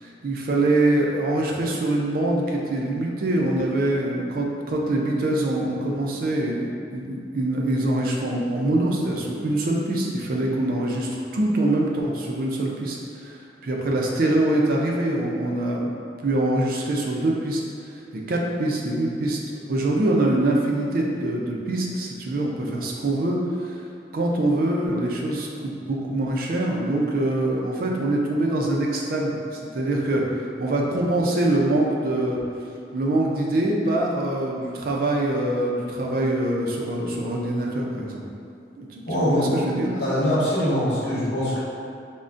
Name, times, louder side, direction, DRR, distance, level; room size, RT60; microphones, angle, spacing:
voice 1, 0.0-15.9 16.2-18.0 18.3-19.4 19.7-23.8 24.1-30.3 30.6-32.4 32.9-38.2 38.8-39.9, right 1 dB, 55° right, -2 dB, 0.4 m, -24 dB
voice 2, 39.0-39.5 40.0-41.6, equal, 85° left, -9 dB, 1.1 m, -23 dB
3.7 x 2.1 x 2.5 m, 2.4 s
head